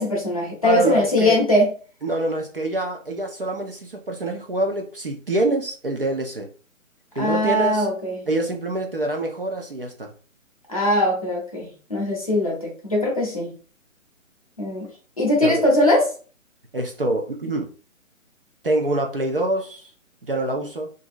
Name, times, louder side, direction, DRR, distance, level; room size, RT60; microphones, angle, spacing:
voice 1, 0.0-1.7 7.2-8.2 10.7-13.5 14.6-14.9 15.2-16.1, left 1 dB, 25° left, -3 dB, 0.7 m, -21 dB
voice 2, 0.6-1.4 2.0-6.5 7.2-7.9 8.3-10.1 15.4-15.6 16.7-17.7 18.6-19.9 20.3-20.9, right 2 dB, 45° right, 2 dB, 0.5 m, -25 dB
2.8 x 2.6 x 2.5 m, 0.38 s
hypercardioid pair, 170°, 40 cm